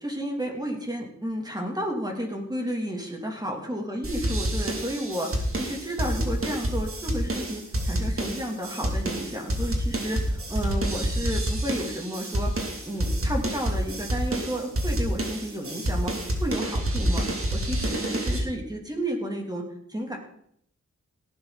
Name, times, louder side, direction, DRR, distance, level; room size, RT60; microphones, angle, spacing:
voice 1, 0.0-12.5 12.8-17.3 17.5-19.6 19.9-20.2, equal, 15° right, 1 dB, 3.0 m, -32 dB
sound 1, 4.0-18.4, right 1 dB, 50° right, 3.0 m, -28 dB
17.5 x 11.5 x 4.1 m, 0.69 s
wide cardioid pair, 95°, 29 cm